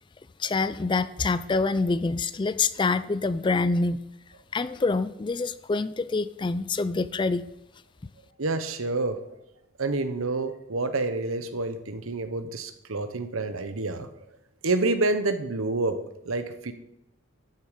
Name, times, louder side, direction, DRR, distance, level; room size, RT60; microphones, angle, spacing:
voice 1, 0.4-4.0 4.5-7.4, left 3 dB, 20° left, 15 dB, 0.3 m, -26 dB
voice 2, 8.4-9.2 9.8-14.3 14.6-16.0 16.2-16.7, right 3 dB, 80° right, 9 dB, 1.1 m, -28 dB
12.5 x 7.1 x 5.1 m, 0.87 s
head